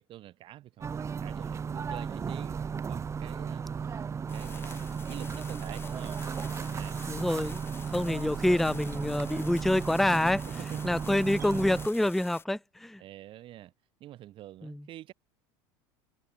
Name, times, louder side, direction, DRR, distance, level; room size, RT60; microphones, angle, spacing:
voice 1, 0.0-7.0 10.5-11.1 11.8-11.9 13.0-13.7 14.0-15.1, right 13 dB, 45° right, 5.4 m, -47 dB
sound 1, 0.8-11.9, right 6 dB, 25° right, 4.1 m, -35 dB
sound 2, 4.3-12.4, left 5 dB, 20° left, 2.7 m, -49 dB
voice 2, 7.1-10.4 10.8-13.0 14.6-14.8, left 1 dB, ahead, 0.6 m, -27 dB
supercardioid pair, 120°, 12 cm